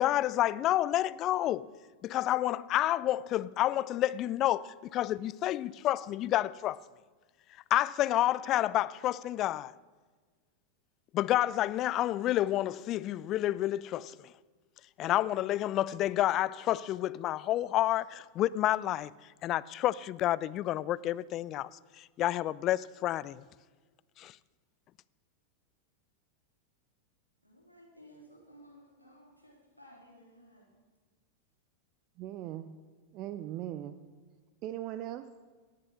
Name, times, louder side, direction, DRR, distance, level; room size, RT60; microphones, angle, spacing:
voice 1, 0.0-1.7 2.0-6.8 7.7-9.7 11.1-14.3 15.0-19.1 19.4-21.7 22.0-23.4 24.2-24.3, left 14 dB, 35° left, 0.3 m, -29 dB
voice 2, 27.4-30.8, equal, 90° right, 3.1 m, -57 dB
voice 3, 32.2-32.7 33.1-34.0 34.6-35.3, right 13 dB, 40° right, 0.5 m, -39 dB
17.5 x 6.7 x 6.4 m
figure-of-eight pair, 90°, 0 cm